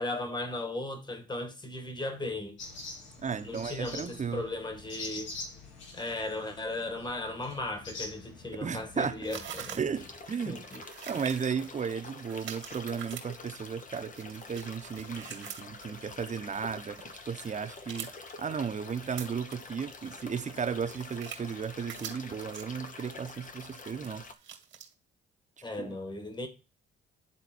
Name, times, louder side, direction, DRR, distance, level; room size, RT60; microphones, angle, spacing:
voice 1, 0.0-2.6 3.4-5.3 5.9-9.8 10.5-10.8 25.6-26.5, left 2 dB, 20° left, 1.8 m, -36 dB
sound 1, 2.6-10.2, left 3 dB, 75° left, 2.1 m, -45 dB
voice 2, 3.2-4.4 8.6-9.2 9.7-10.6 11.1-18.1 18.4-24.2 25.8-26.0, right 6 dB, 40° right, 1.1 m, -35 dB
sound 2, 8.7-8.8 9.3-10.0 10.6-13.6 14.0-17.3 17.8-18.4 18.8-19.7 20.0-20.1 20.4-21.6 21.8-22.6 22.9-23.2 23.5-24.9, right 9 dB, 75° right, 1.9 m, -44 dB
sound 3, 9.9-24.3, left 3 dB, 40° left, 1.1 m, -47 dB
10.0 x 3.8 x 4.4 m
cardioid pair, 90°, 20 cm